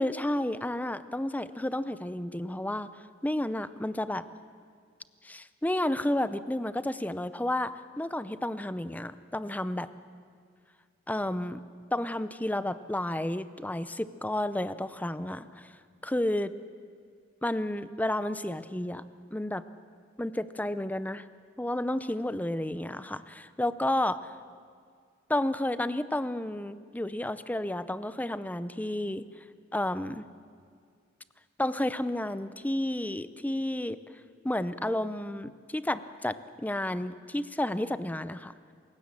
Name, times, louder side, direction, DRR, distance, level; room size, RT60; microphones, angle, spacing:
voice 1, 0.0-2.9 3.2-4.2 5.2-9.9 11.1-11.6 11.9-15.7 16.0-16.5 17.4-19.0 19.3-19.6 20.2-21.3 21.6-24.3 25.3-29.2 29.7-30.3 31.6-34.0 34.4-38.5, left 1 dB, 10° left, 14 dB, 0.6 m, -31 dB
27.0 x 16.5 x 7.5 m, 2.1 s
head